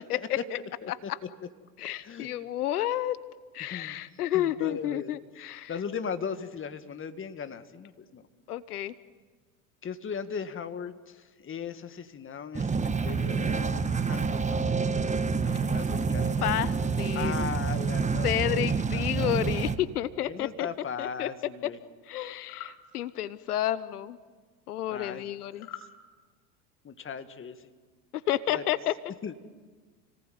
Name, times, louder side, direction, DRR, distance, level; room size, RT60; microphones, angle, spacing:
voice 1, 0.9-1.2 1.8-3.2 3.5-5.8 8.5-8.9 16.4-17.5 18.2-20.7 21.0-21.3 21.6-21.7 22.1-24.2 24.7-25.7 28.1-29.0, left 13 dB, 85° left, 16 dB, 1.0 m, -30 dB
voice 2, 4.3-5.2 5.7-8.2 9.8-14.7 15.4-16.7 17.1-18.7 18.9-19.3 20.3-21.8 24.9-25.3 25.6-25.7 26.8-27.6 28.5-28.6 29.2-29.4, left 6 dB, 25° left, 9 dB, 2.0 m, -38 dB
sound 1, 12.5-19.8, right 5 dB, 15° right, 1.4 m, -28 dB
sound 2, 22.4-22.8 25.6-25.9, left 10 dB, 50° left, 4.5 m, -43 dB
29.5 x 19.0 x 9.5 m, 1.4 s
hypercardioid pair, 90°, 44 cm